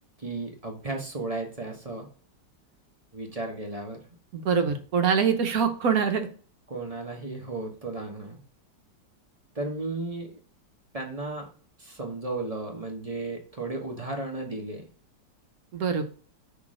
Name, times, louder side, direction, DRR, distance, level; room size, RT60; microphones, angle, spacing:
voice 1, 0.2-2.1 3.1-4.0 6.7-8.4 9.5-10.3 10.9-11.5 11.8-14.9, right 2 dB, 25° right, 1 dB, 1.0 m, -34 dB
voice 2, 4.3-6.3 15.7-16.0, right 6 dB, 60° right, 7 dB, 1.2 m, -24 dB
5.9 x 3.3 x 4.9 m, 0.41 s
omnidirectional pair, 1.9 m